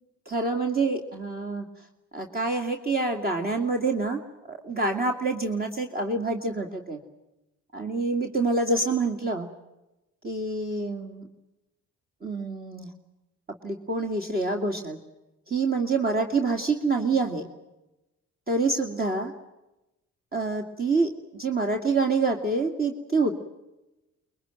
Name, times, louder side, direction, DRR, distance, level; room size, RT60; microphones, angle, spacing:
voice 1, 0.3-1.7 2.1-4.2 4.5-7.0 7.7-9.5 10.2-11.2 12.2-12.9 13.5-15.0 15.5-17.5 18.5-19.3 20.3-23.4, right 3 dB, 30° right, 3 dB, 2.6 m, -27 dB
24.5 x 22.0 x 9.1 m, 0.98 s
cardioid pair, 90°, 30 cm